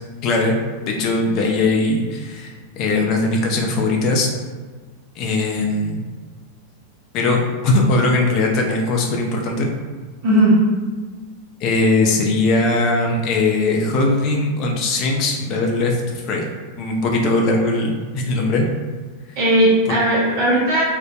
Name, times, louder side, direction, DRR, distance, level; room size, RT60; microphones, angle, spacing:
voice 1, 0.2-0.6 0.9-4.3 5.2-6.0 7.1-9.7 11.6-16.4 16.8-18.6 19.9-20.0, left 2 dB, 40° left, 1 dB, 0.4 m, -20 dB
voice 2, 10.2-10.6 19.4-20.8, right 1 dB, 45° right, -7 dB, 0.7 m, -16 dB
2.6 x 2.1 x 2.3 m, 1.4 s
figure-of-eight pair, 90°, 0 cm